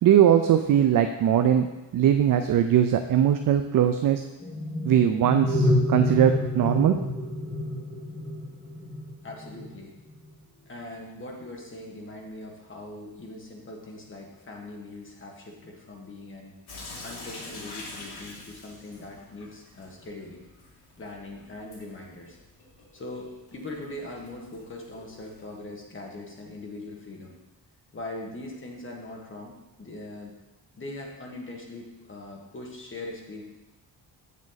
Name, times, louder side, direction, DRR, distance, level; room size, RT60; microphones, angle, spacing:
voice 1, 0.0-1.7 1.9-4.2 4.8-6.9, right 10 dB, 55° right, 7 dB, 0.5 m, -20 dB
sound 1, 4.4-9.8, left 1 dB, 10° left, 1.5 m, -28 dB
voice 2, 9.2-9.9 10.7-16.5 17.0-20.5 21.0-22.4 22.9-27.4 27.9-30.3 30.7-33.4, left 2 dB, 30° left, -1 dB, 1.6 m, -41 dB
Sink (filling or washing) / Drip, 16.7-25.6, left 2 dB, 65° left, 2.3 m, -46 dB
7.4 x 7.3 x 4.0 m, 1.1 s
cardioid pair, 135°, 40 cm